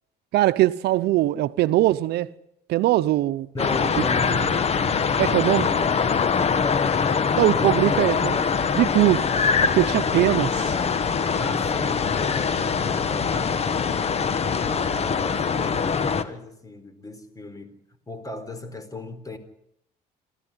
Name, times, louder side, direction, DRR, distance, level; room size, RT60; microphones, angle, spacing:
voice 1, 0.3-2.3 2.7-3.5 5.2-5.7 7.4-8.4 8.7-9.3 9.6-10.7, right 15 dB, 75° right, 0.8 m, -21 dB
voice 2, 3.5-4.6 5.0-7.7 11.4-14.1 14.6-17.7 18.1-19.4, left 1 dB, 20° left, 4.1 m, -37 dB
sound 1, 3.6-16.2, left 6 dB, 40° left, 1.6 m, -23 dB
28.0 x 13.5 x 9.9 m
cardioid pair, 110°, 17 cm